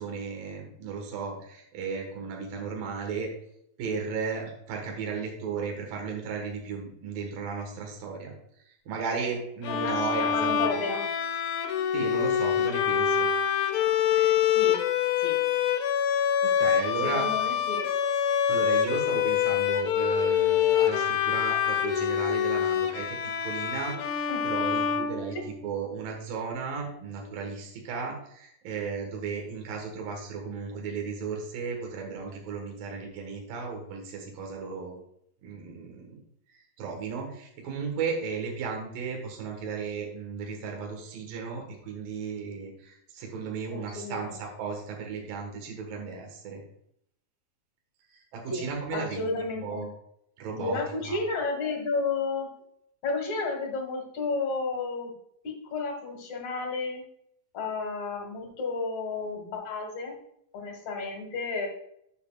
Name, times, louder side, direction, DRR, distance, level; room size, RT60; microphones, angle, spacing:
voice 1, 0.0-3.3 3.8-8.3 8.7-10.5 11.9-13.3 16.4-17.3 18.5-25.4 25.6-35.0 35.4-36.2 36.8-46.6 48.1-49.2 49.6-49.9 50.4-50.8 51.1-51.2, right 5 dB, 75° right, 1 dB, 3.1 m, -35 dB
Bowed string instrument, 9.6-25.7, left 9 dB, 80° left, 2.6 m, -26 dB
voice 2, 9.7-11.0 14.1-14.8 15.2-15.4 17.0-17.9 24.3-24.4 25.3-25.4 43.7-44.4 48.5-49.9 50.6-52.5 53.0-55.1 55.4-57.0 57.5-60.1 60.5-61.7, left 3 dB, 60° left, 3 dB, 2.7 m, -32 dB
10.5 x 7.3 x 2.3 m, 0.73 s
omnidirectional pair, 4.0 m